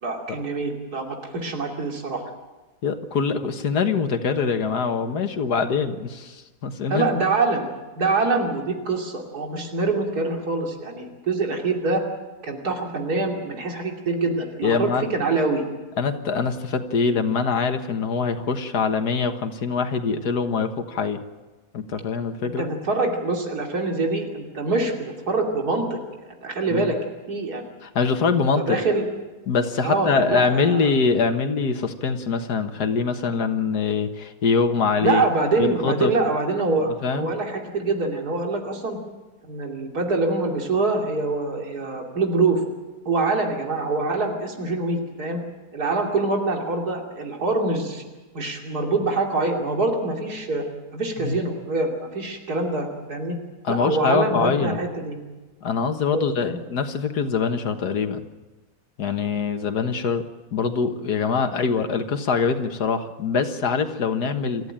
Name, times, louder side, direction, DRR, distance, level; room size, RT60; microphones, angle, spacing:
voice 1, 0.0-2.3 6.9-12.0 12.4-15.6 22.6-26.0 26.4-27.0 27.3-27.6 28.7-29.0 29.8-30.9 35.0-39.0 39.4-42.6 43.0-45.4 45.7-48.0 48.3-50.7 50.9-53.4 53.7-55.2 56.1-56.6, right 3 dB, 75° right, 1 dB, 3.2 m, -25 dB
voice 2, 2.8-7.1 14.6-15.1 16.0-21.2 21.7-22.7 26.7-26.9 27.8-28.8 29.5-35.2 35.6-36.1 37.0-37.3 51.2-51.4 53.6-54.8 55.6-58.2 59.0-60.2 60.5-64.7, left 5 dB, 90° left, 7 dB, 2.0 m, -23 dB
28.0 x 14.0 x 8.8 m, 1.2 s
omnidirectional pair, 1.7 m